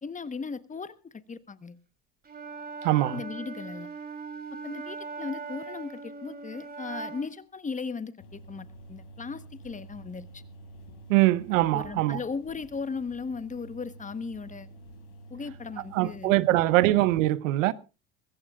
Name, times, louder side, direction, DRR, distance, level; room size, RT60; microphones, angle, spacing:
voice 1, 0.0-1.8 3.1-3.9 4.5-10.4 11.7-14.7 15.3-16.4, left 5 dB, 20° left, 1.1 m, -37 dB
Wind instrument woodwind instrument, 2.2-7.4, right 4 dB, 25° right, 3.2 m, -40 dB
voice 2, 2.8-3.2 11.1-12.2 15.9-17.7, right 17 dB, 85° right, 0.9 m, -23 dB
sound 1, 8.2-17.2, right 1 dB, 80° left, 3.5 m, -49 dB
21.5 x 16.0 x 2.4 m
supercardioid pair, 90°, 38 cm